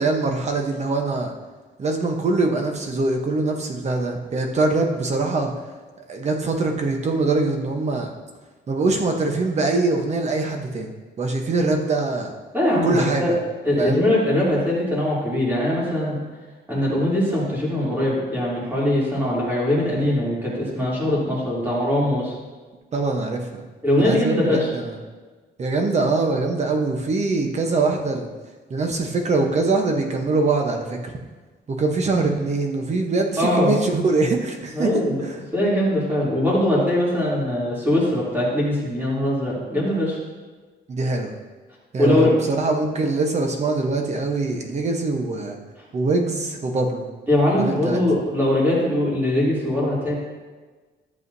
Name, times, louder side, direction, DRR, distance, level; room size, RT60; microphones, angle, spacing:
voice 1, 0.0-1.3 1.8-5.5 6.1-8.1 8.7-12.3 12.8-13.4 13.8-14.1 22.9-23.6 24.0-25.0 25.6-28.3 28.7-31.1 31.7-34.9 35.2-35.4 40.9-41.3 41.9-45.6 45.9-47.0 47.5-48.0, right 3 dB, 35° right, 3 dB, 1.0 m, -23 dB
voice 2, 12.5-13.3 13.6-16.2 16.7-22.4 23.8-24.7 33.4-33.7 34.7-35.2 35.5-40.2 42.0-42.4 47.3-50.1, left 1 dB, 10° right, -7 dB, 3.0 m, -21 dB
13.5 x 7.3 x 2.7 m, 1.3 s
wide cardioid pair, 170°, 19 cm